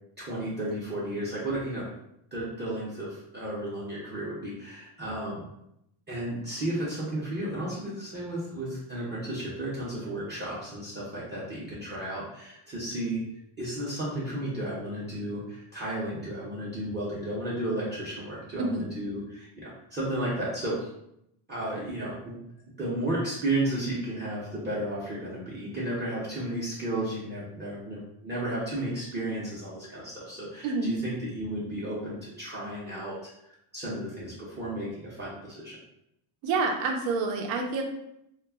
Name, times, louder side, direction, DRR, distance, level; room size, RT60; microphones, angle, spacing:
voice 1, 0.2-1.9 2.3-5.4 6.1-13.2 13.6-20.9 21.5-22.4 22.8-33.2 33.4-35.8, right 1 dB, 25° right, -8 dB, 0.6 m, -33 dB
voice 2, 30.6-30.9 36.4-37.8, right 3 dB, 80° right, 3 dB, 0.7 m, -28 dB
2.3 x 2.0 x 3.3 m, 0.80 s
cardioid pair, 125°, 48 cm